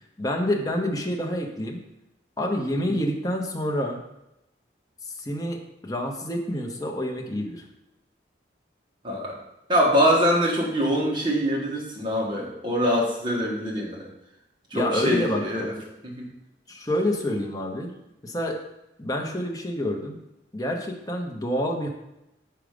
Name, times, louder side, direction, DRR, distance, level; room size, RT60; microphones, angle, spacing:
voice 1, 0.2-1.8 2.4-4.0 5.1-7.7 14.7-15.7 16.7-17.9 18.2-18.6 19.0-20.2 20.5-21.9, left 1 dB, 20° left, 2 dB, 0.8 m, -28 dB
voice 2, 9.0-9.4 9.7-14.1 14.7-15.7 16.0-16.3, equal, 25° right, -3 dB, 1.4 m, -24 dB
5.0 x 4.6 x 5.1 m, 0.89 s
head